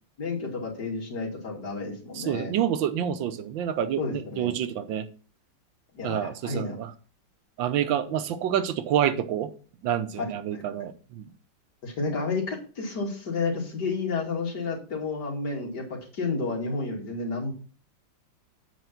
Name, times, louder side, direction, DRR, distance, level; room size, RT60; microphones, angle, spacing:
voice 1, 0.2-2.5 4.0-4.5 5.9-6.8 10.2-10.3 10.5-10.6 11.8-17.5, left 3 dB, 60° left, 0 dB, 2.8 m, -31 dB
voice 2, 2.1-5.1 6.0-6.9 7.6-9.5 9.8-11.3, right 10 dB, 85° right, 11 dB, 1.5 m, -28 dB
8.0 x 5.0 x 5.9 m, 0.39 s
omnidirectional pair, 2.0 m